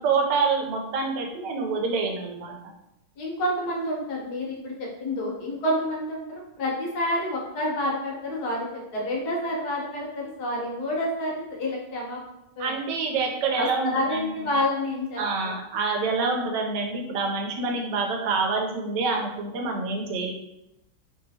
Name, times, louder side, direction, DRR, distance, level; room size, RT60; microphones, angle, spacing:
voice 1, 0.0-2.5 12.6-14.5 15.2-20.3, right 4 dB, 80° right, 2 dB, 1.2 m, -27 dB
voice 2, 3.2-12.2 12.6-12.8 13.5-15.2, left 1 dB, 65° left, -2 dB, 1.2 m, -28 dB
3.1 x 2.7 x 2.7 m, 0.87 s
omnidirectional pair, 1.9 m